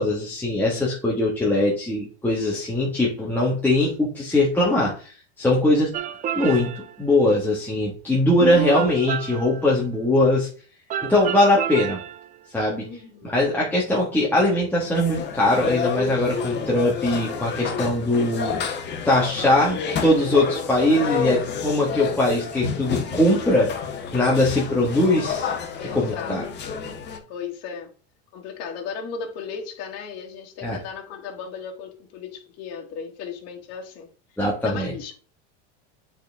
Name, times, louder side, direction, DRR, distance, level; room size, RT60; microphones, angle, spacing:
voice 1, 0.0-5.1 5.4-5.9 6.4-6.7 7.0-10.5 11.0-12.0 12.5-12.9 13.3-18.6 19.0-23.7 24.1-25.5 25.9-26.4 30.6-30.8 34.4-34.9, left 1 dB, 5° left, -6 dB, 1.6 m, -21 dB
sound 1, 5.9-7.0 8.4-9.9 10.9-12.4, right 10 dB, 25° right, 0.4 m, -30 dB
voice 2, 12.7-13.4 21.6-22.1 25.8-26.7 27.3-27.9 28.3-34.1 34.6-35.1, left 6 dB, 50° left, 2 dB, 1.9 m, -36 dB
sound 2, 14.9-27.2, left 6 dB, 30° left, 1.4 m, -29 dB
8.2 x 4.4 x 3.5 m, 0.40 s
supercardioid pair, 135°, 33 cm